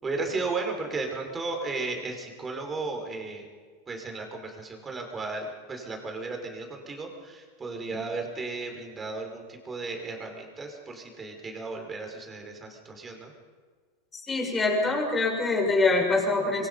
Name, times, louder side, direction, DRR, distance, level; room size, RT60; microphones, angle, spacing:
voice 1, 0.0-3.5 3.9-13.3, right 3 dB, 15° right, 3 dB, 5.1 m, -34 dB
voice 2, 14.3-16.7, left 3 dB, 15° left, -1 dB, 7.0 m, -24 dB
26.5 x 23.5 x 5.6 m, 1.5 s
supercardioid pair, 140°, 0 cm